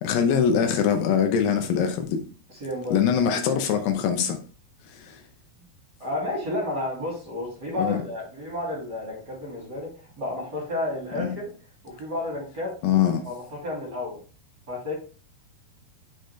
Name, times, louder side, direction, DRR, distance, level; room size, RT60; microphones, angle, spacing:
voice 1, 0.0-2.2 2.9-4.4 4.9-5.2 7.8-8.0 11.2-11.3 12.8-13.3, left 8 dB, 80° left, 2.8 m, -23 dB
voice 2, 2.5-3.0 6.0-11.5 11.8-12.7 13.2-14.2 14.7-14.9, left 1 dB, 30° right, 2.7 m, -31 dB
6.7 x 6.1 x 3.2 m
omnidirectional pair, 4.9 m